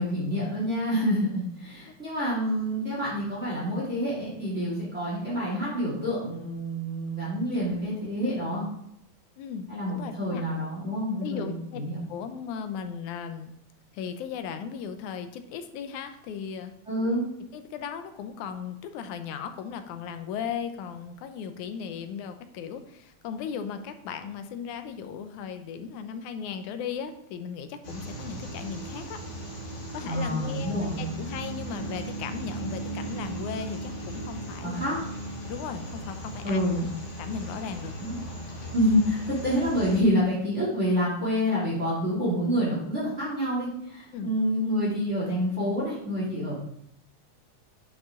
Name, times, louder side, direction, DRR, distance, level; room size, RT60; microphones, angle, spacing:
voice 1, 0.0-8.6 9.7-12.0 16.9-17.2 30.0-31.1 34.6-35.0 36.4-36.8 38.0-38.2 38.7-46.6, equal, 25° right, -7 dB, 3.0 m, -27 dB
voice 2, 9.4-10.5 11.2-11.8 12.1-13.5 13.9-16.7 17.5-29.2 29.9-34.8 35.5-36.9 37.2-38.0 44.1-44.3, left 7 dB, 85° left, 9 dB, 2.1 m, -37 dB
sound 1, 27.8-40.0, right 1 dB, 40° left, 2.2 m, -37 dB
9.8 x 6.0 x 3.7 m, 0.76 s
omnidirectional pair, 3.4 m